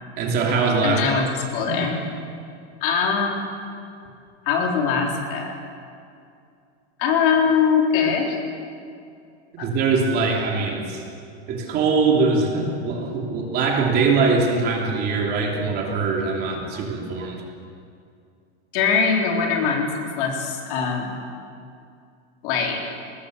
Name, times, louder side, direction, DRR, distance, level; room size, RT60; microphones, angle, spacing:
voice 1, 0.2-1.0 1.7-1.9 9.5-11.0 11.5-17.4, right 4 dB, 30° right, 0 dB, 3.1 m, -22 dB
voice 2, 0.8-2.0 2.8-3.5 4.5-5.5 7.0-8.4 9.6-9.7 18.7-19.9 20.2-21.1 22.4-22.8, left 6 dB, 50° left, 0 dB, 3.8 m, -22 dB
22.5 x 20.5 x 6.7 m, 2.4 s
supercardioid pair, 170°, 34 cm